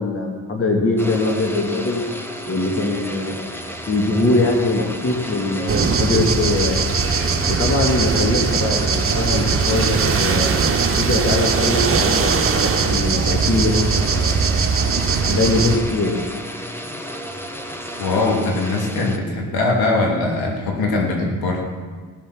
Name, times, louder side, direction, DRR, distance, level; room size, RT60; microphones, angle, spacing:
voice 1, 0.0-2.0 2.5-3.4 3.9-6.9 7.5-10.5 10.9-13.7 14.1-14.7 15.2-16.2, left 2 dB, 35° left, 1 dB, 2.1 m, -22 dB
sound 1, 1.0-19.2, equal, 5° left, 1.4 m, -33 dB
sound 2, 5.7-15.8, right 5 dB, 35° right, 1.3 m, -20 dB
voice 2, 18.0-21.6, left 2 dB, 70° left, 0 dB, 2.9 m, -21 dB
18.5 x 7.3 x 6.2 m, 1.5 s
cardioid pair, 85°, 38 cm